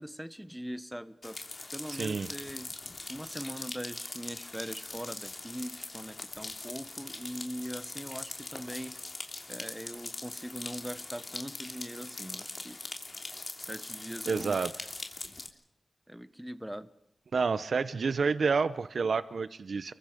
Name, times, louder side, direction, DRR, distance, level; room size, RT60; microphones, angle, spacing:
voice 1, 0.0-1.4 1.7-2.7 3.1-9.0 9.5-12.8 13.6-14.6 16.1-16.9, equal, 5° right, 12 dB, 1.3 m, -41 dB
sound 1, 1.2-15.5, left 2 dB, 40° left, 3.3 m, -42 dB
voice 2, 1.9-2.3 14.3-14.7 17.3-19.9, right 5 dB, 75° right, 14 dB, 0.9 m, -29 dB
30.0 x 23.0 x 5.2 m, 0.74 s
wide cardioid pair, 65°, 0 cm